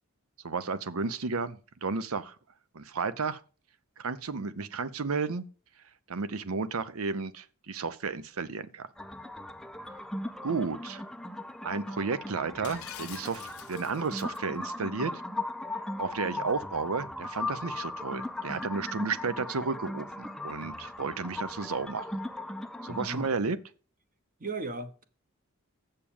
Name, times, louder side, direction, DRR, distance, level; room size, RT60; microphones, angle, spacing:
voice 1, 0.4-2.3 2.7-3.4 4.0-5.4 6.1-8.9 10.4-11.0 11.6-15.1 16.0-22.1 22.8-23.6, right 4 dB, 75° right, 0.7 m, -33 dB
sound 1, 9.0-23.3, left 2 dB, ahead, 0.4 m, -38 dB
Shatter, 12.6-14.4, left 12 dB, 75° left, 0.8 m, -46 dB
voice 2, 22.9-23.3 24.4-25.0, right 2 dB, 40° right, 1.0 m, -36 dB
7.3 x 6.8 x 7.0 m
head